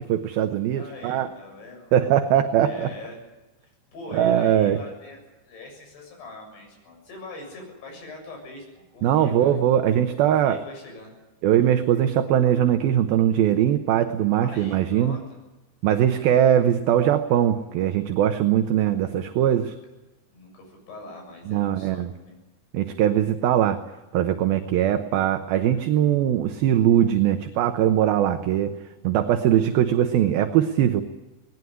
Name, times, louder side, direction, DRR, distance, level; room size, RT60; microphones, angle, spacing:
voice 1, 0.0-1.3 1.9-2.9 4.1-4.8 9.0-10.6 11.4-15.2 15.8-19.7 21.5-22.1 22.7-23.8 24.1-28.7 29.0-31.0, right 10 dB, 70° right, 8 dB, 2.5 m, -21 dB
voice 2, 0.7-2.0 2.6-3.2 3.6-9.6 10.2-11.1 14.4-15.4 18.7-19.7 20.3-22.4, left 2 dB, 65° left, 1 dB, 9.2 m, -42 dB
19.5 x 19.0 x 9.9 m, 1.1 s
omnidirectional pair, 5.0 m